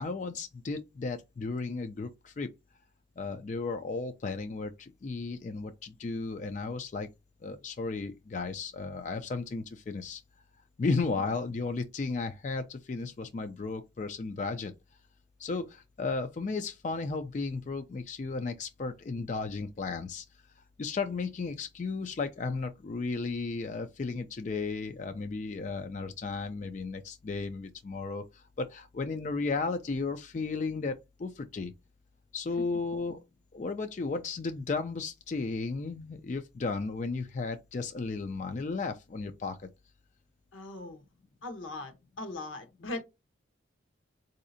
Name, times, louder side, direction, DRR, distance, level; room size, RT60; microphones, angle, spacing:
voice 1, 0.0-2.5 3.2-7.1 7.4-10.2 10.8-14.7 15.4-20.2 20.8-31.7 32.3-33.2 33.5-39.7, left 4 dB, 40° left, 0.3 m, -34 dB
voice 2, 40.5-41.0 41.4-43.0, left 2 dB, 85° left, 0.9 m, -39 dB
4.0 x 2.7 x 2.5 m
head